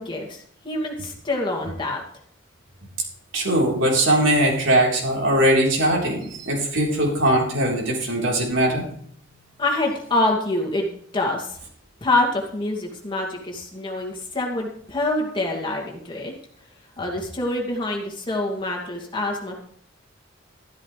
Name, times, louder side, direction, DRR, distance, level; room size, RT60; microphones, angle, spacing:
voice 1, 0.0-2.0 9.6-10.9 11.1-11.6 12.0-16.3 17.0-19.6, left 2 dB, 25° left, -1 dB, 2.4 m, -26 dB
voice 2, 3.3-8.8, right 1 dB, 80° right, -2 dB, 4.0 m, -20 dB
13.0 x 12.5 x 3.3 m, 0.62 s
head